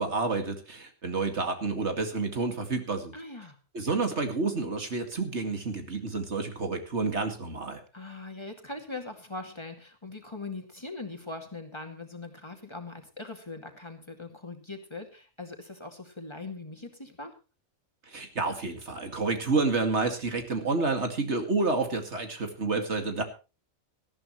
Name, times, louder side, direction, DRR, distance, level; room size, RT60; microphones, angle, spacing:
voice 1, 0.0-3.1 3.7-7.8 18.1-23.2, right 3 dB, 70° right, 5 dB, 2.5 m, -29 dB
voice 2, 3.1-3.6 7.9-17.3, left 3 dB, 25° left, 3 dB, 2.3 m, -41 dB
19.0 x 13.5 x 3.1 m, 0.31 s
omnidirectional pair, 1.2 m